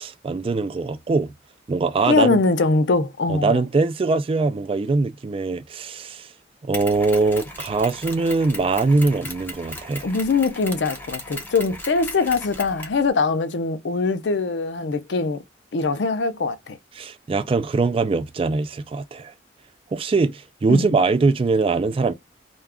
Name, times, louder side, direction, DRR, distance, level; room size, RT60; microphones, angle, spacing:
voice 1, 0.0-1.3 1.7-2.4 3.3-6.3 6.6-10.1 16.9-19.3 19.9-22.1, right 3 dB, 30° right, 0.3 m, -22 dB
voice 2, 2.0-3.6 10.0-15.4 15.7-16.8 20.7-20.9, left 3 dB, 75° left, 0.5 m, -22 dB
Mechanisms, 6.7-13.0, left 1 dB, 10° left, 0.7 m, -37 dB
2.3 x 2.3 x 3.4 m
head